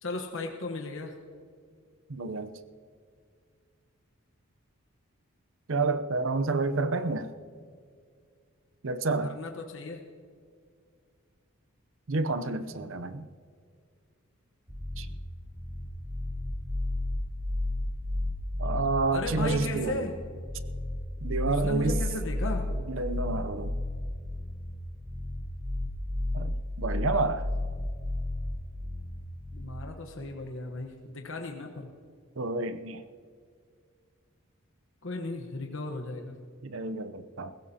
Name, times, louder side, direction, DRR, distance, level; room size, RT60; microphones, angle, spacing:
voice 1, 0.0-1.2 9.2-10.1 19.1-20.2 21.4-22.7 29.5-31.9 35.0-36.4, left 2 dB, 60° left, 1.1 m, -36 dB
voice 2, 2.1-2.5 5.7-7.3 8.8-9.3 12.1-13.3 15.0-15.1 18.6-20.1 21.2-22.0 22.9-23.8 26.3-27.5 32.4-33.0 36.6-37.5, right 3 dB, 60° right, 0.7 m, -29 dB
sound 1, 14.7-29.7, left 1 dB, 30° right, 3.6 m, -33 dB
20.5 x 16.0 x 2.8 m
head